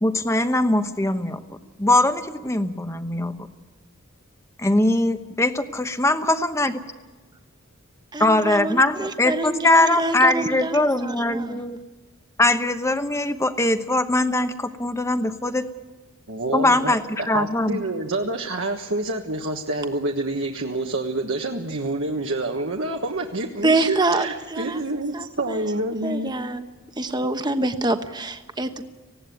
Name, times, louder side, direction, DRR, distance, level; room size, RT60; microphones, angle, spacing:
voice 1, 0.0-1.4 1.8-3.5 4.6-6.7 8.2-11.8 12.4-15.7 16.5-17.0 17.3-17.8, left 2 dB, 15° left, 9 dB, 1.0 m, -21 dB
voice 2, 8.1-11.6 23.6-25.7 26.0-26.6 27.0-28.8, right 2 dB, 20° right, 8 dB, 1.1 m, -26 dB
voice 3, 16.3-26.3, right 2 dB, 65° right, 1 dB, 1.4 m, -27 dB
19.5 x 16.5 x 9.3 m, 1.2 s
head